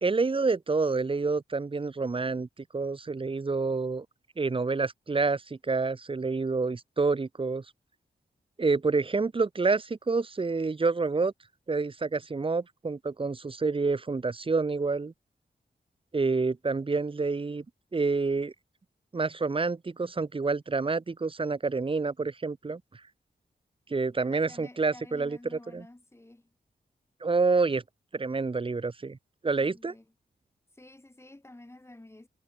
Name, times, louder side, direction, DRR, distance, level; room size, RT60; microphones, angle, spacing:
voice 1, 0.0-2.5 2.7-4.0 4.4-7.6 8.6-11.3 11.7-15.1 16.1-17.6 17.9-18.5 19.1-22.8 23.9-25.4 25.7-25.8 27.2-27.8 28.1-29.2 29.4-29.9, right 4 dB, 30° right, 1.3 m, -28 dB
voice 2, 24.2-26.5 29.6-30.1 30.7-32.3, left 1 dB, 15° left, 4.3 m, -50 dB
wide cardioid pair, 120°, 17 cm